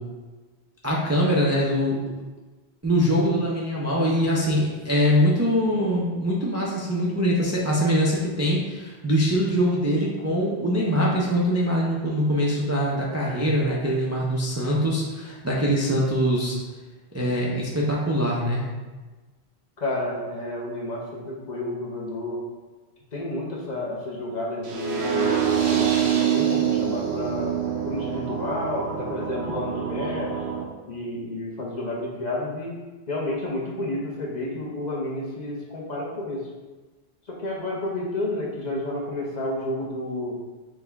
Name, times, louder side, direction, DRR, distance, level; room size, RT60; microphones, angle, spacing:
voice 1, 0.8-2.0 2.8-16.6 17.1-18.6, equal, 20° right, -4 dB, 0.4 m, -23 dB
voice 2, 19.8-22.4 23.1-25.4 25.6-27.6 27.8-30.4 30.9-32.8 33.1-36.5 37.3-40.4, left 1 dB, 45° left, -3 dB, 0.8 m, -30 dB
sound 1, 24.6-30.6, right 8 dB, 85° right, 1.0 m, -25 dB
6.1 x 2.2 x 3.4 m, 1.3 s
omnidirectional pair, 1.1 m